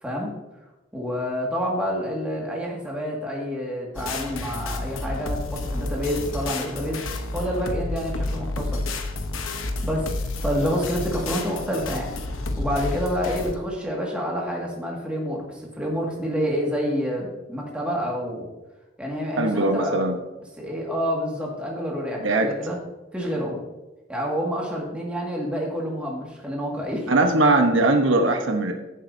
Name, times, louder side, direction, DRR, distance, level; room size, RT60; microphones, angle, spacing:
voice 1, 0.9-7.0 7.3-8.8 9.8-10.1 10.4-12.1 12.6-18.5 19.0-20.1 20.6-22.8 23.1-23.6 24.1-27.1, equal, 5° right, -3 dB, 1.9 m, -28 dB
sound 1, 4.0-13.6, left 2 dB, 85° left, 0.9 m, -30 dB
voice 2, 19.4-20.2 22.2-22.5 27.1-28.7, right 2 dB, 75° right, 4 dB, 1.0 m, -20 dB
14.5 x 7.4 x 2.7 m, 1.0 s
head